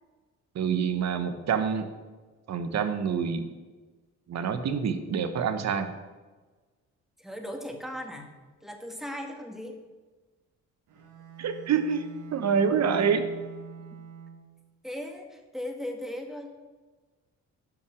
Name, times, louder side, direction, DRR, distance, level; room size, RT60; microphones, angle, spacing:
voice 1, 0.5-1.9 2.5-3.5 4.3-5.9 11.4-13.3, right 6 dB, 60° right, 9 dB, 1.2 m, -27 dB
voice 2, 7.2-8.3 8.6-9.8 13.0-13.3 14.8-16.5, left 1 dB, ahead, 3 dB, 1.8 m, -37 dB
Bowed string instrument, 10.9-14.7, right 6 dB, 80° right, 1.6 m, -45 dB
12.0 x 5.9 x 6.4 m, 1.3 s
cardioid pair, 90°, 30 cm